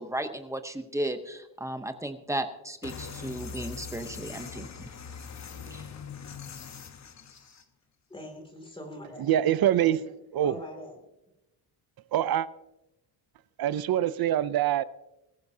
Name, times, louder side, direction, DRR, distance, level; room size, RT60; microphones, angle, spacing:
voice 1, 0.0-4.9 5.7-5.9, right 1 dB, 5° right, 0.7 m, -35 dB
sound 1, 2.8-7.6, left 6 dB, 35° left, 1.0 m, -42 dB
voice 2, 8.1-9.4 9.8-10.0 10.4-11.0, left 1 dB, 10° left, 2.5 m, -43 dB
voice 3, 9.2-10.0 10.3-10.5 12.1-12.5 13.6-14.8, right 11 dB, 50° right, 0.6 m, -24 dB
21.0 x 14.0 x 2.7 m
cardioid pair, 175°, 48 cm